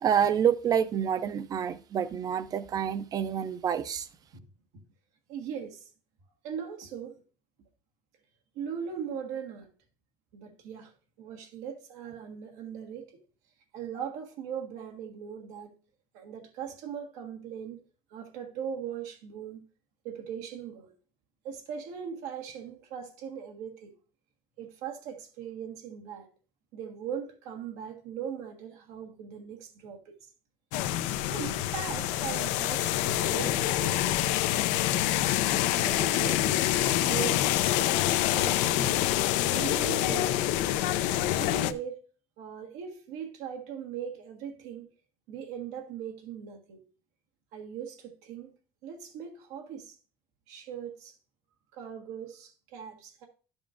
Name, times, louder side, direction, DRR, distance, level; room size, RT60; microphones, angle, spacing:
voice 1, 0.0-4.1, right 8 dB, 30° right, 0.5 m, -27 dB
voice 2, 5.3-5.9 6.4-7.2 8.5-9.7 10.3-13.1 13.7-15.7 16.1-17.8 18.1-19.6 20.0-20.9 21.4-23.9 24.6-26.3 26.7-30.1 31.2-34.5 35.4-37.4 37.8-38.1 38.3-39.0 39.4-40.6 41.3-42.0 42.4-44.9 45.3-46.8 47.5-48.5 48.8-50.0 50.5-51.1 51.7-53.3, right 8 dB, 85° right, 1.6 m, -39 dB
sound 1, 30.7-41.7, left 13 dB, 85° left, 0.5 m, -26 dB
11.5 x 7.1 x 2.5 m
cardioid pair, 155°, 12 cm